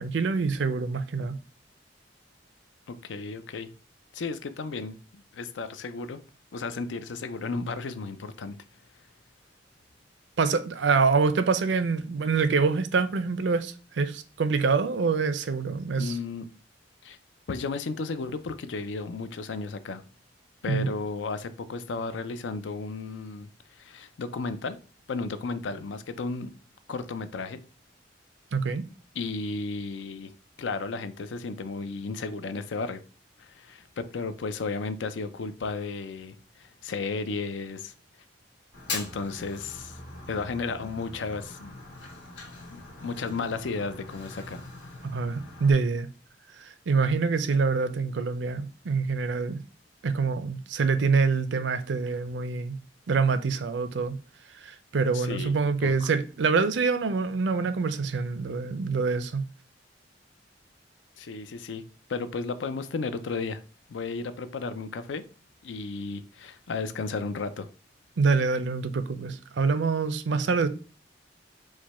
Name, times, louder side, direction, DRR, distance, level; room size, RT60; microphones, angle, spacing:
voice 1, 0.0-1.4 10.4-16.2 20.6-20.9 28.5-28.8 45.0-46.1 46.6-49.6 50.0-52.8 53.1-54.2 54.6-59.5 68.2-70.7, right 4 dB, 75° right, 0.5 m, -26 dB
voice 2, 2.9-3.7 4.1-6.2 6.5-8.6 16.0-16.4 17.0-17.2 17.5-20.0 20.6-23.5 23.8-24.8 25.1-26.5 26.9-27.6 29.2-30.3 30.6-33.0 33.4-37.9 38.9-40.0 40.3-41.8 42.7-44.6 55.1-55.6 55.8-56.1 61.2-61.8 62.1-63.6 63.9-65.2 65.6-67.7, left 4 dB, 90° left, 0.5 m, -34 dB
Fire, 38.7-45.7, left 3 dB, 75° left, 1.7 m, -41 dB
4.9 x 2.2 x 4.1 m
head